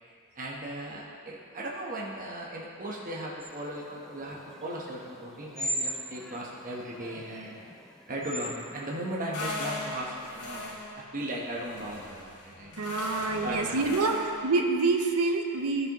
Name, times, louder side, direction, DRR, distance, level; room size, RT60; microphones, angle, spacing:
voice 1, 0.4-7.6 8.1-10.7 11.1-12.7 13.4-13.8, right 1 dB, 40° right, -4 dB, 1.0 m, -37 dB
sound 1, 3.4-9.4, equal, ahead, 0.4 m, -39 dB
sound 2, 9.3-14.5, left 2 dB, 80° left, 1.4 m, -39 dB
voice 2, 12.8-15.9, right 3 dB, 80° right, 3 dB, 0.7 m, -27 dB
12.5 x 6.5 x 3.0 m, 2.3 s
head